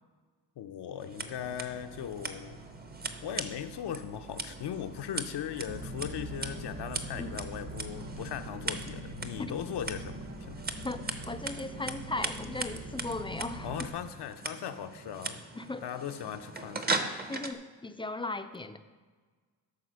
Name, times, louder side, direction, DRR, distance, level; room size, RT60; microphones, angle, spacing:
voice 1, 0.6-2.6 3.2-10.6 13.6-15.4 15.8-17.1, left 9 dB, 70° left, 8 dB, 0.7 m, -38 dB
Scissors, 1.0-17.5, right 3 dB, 25° right, 0.7 m, -39 dB
sound 1, 1.1-13.1, right 4 dB, 70° right, 1.6 m, -53 dB
sound 2, 5.7-13.9, right 1 dB, 40° right, 1.1 m, -42 dB
voice 2, 11.3-13.9 15.6-15.9 17.3-18.8, left 2 dB, 15° left, 9 dB, 0.4 m, -37 dB
12.5 x 4.3 x 6.3 m, 1.4 s
cardioid pair, 95°, 42 cm